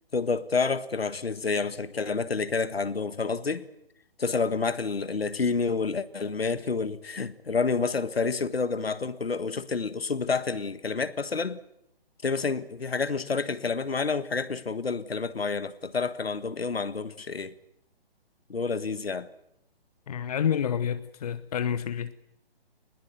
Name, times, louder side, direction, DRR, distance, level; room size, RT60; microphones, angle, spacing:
voice 1, 0.1-3.7 4.2-11.6 12.2-17.5 18.5-19.3, left 4 dB, 70° left, 1.6 m, -29 dB
voice 2, 20.1-22.1, left 8 dB, 40° left, 0.9 m, -28 dB
21.0 x 19.5 x 9.3 m
figure-of-eight pair, 140°, 31 cm